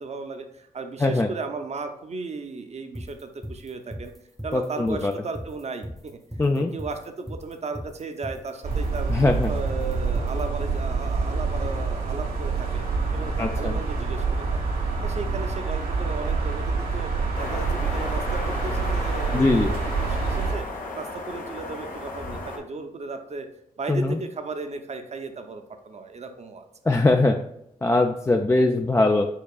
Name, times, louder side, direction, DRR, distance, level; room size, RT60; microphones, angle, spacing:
voice 1, 0.0-4.1 4.4-6.2 6.5-9.1 9.5-12.8 13.1-14.6 15.0-17.1 17.4-20.7 20.9-23.5 23.8-26.6, right 4 dB, 50° right, 6 dB, 0.7 m, -35 dB
sound 1, 2.9-10.4, equal, ahead, 0.8 m, -37 dB
voice 2, 4.5-5.1 6.4-6.7 9.1-9.5 13.4-13.7 19.3-19.7 23.9-24.2 26.9-27.4 27.8-29.3, left 2 dB, 20° left, 4 dB, 0.4 m, -21 dB
sound 2, 8.6-20.5, right 4 dB, 85° right, 1.3 m, -27 dB
sound 3, 17.3-22.6, left 2 dB, 75° left, 1.0 m, -34 dB
4.7 x 4.4 x 2.4 m, 0.77 s
cardioid pair, 60°, 15 cm